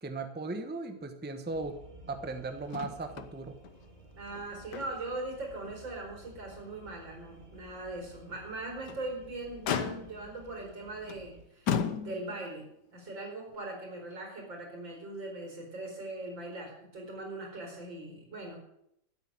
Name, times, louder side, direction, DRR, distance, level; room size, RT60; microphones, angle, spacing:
voice 1, 0.0-1.8 2.1-3.6, right 3 dB, 5° right, 8 dB, 0.9 m, -37 dB
sound 1, 1.5-11.4, right 1 dB, 25° right, 2.6 m, -54 dB
Motor vehicle (road), 2.7-3.3 3.6-3.8 4.3-5.2 5.6-5.8 6.3-6.4 8.6-9.1 9.7-10.3 11.1-11.3 11.7-12.5 13.5-13.6, left 7 dB, 65° left, 1.5 m, -34 dB
voice 2, 4.2-18.6, right 2 dB, 90° right, 2 dB, 5.2 m, -40 dB
13.0 x 8.1 x 8.9 m, 0.77 s
omnidirectional pair, 2.0 m